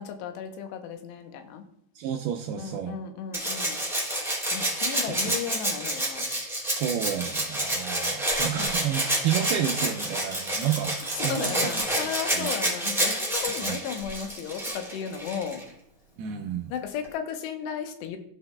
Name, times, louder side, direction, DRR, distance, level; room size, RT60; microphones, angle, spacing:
voice 1, 0.0-1.6 2.6-3.8 4.5-6.3 8.5-8.7 11.1-15.6 16.7-18.2, left 8 dB, 85° left, 6 dB, 2.9 m, -35 dB
voice 2, 2.0-3.0 5.1-5.3 6.8-12.5 13.6-13.8 16.2-16.7, right 10 dB, 85° right, 3 dB, 2.2 m, -31 dB
Rattle (instrument), 3.3-15.6 17.0-17.1, right 1 dB, ahead, 2.0 m, -29 dB
16.0 x 5.9 x 2.2 m, 0.70 s
omnidirectional pair, 5.0 m